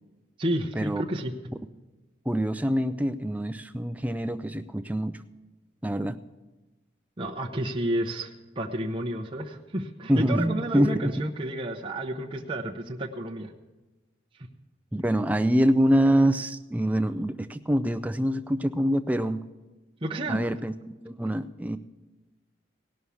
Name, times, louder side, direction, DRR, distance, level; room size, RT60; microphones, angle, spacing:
voice 1, 0.4-1.3 7.2-13.5 20.0-20.4, right 1 dB, 25° right, -1 dB, 0.8 m, -31 dB
voice 2, 2.3-5.2 5.8-6.2 10.1-11.1 14.9-19.4 20.3-20.7 21.1-21.8, equal, 10° right, 10 dB, 0.4 m, -25 dB
17.5 x 6.3 x 7.0 m, 1.2 s
head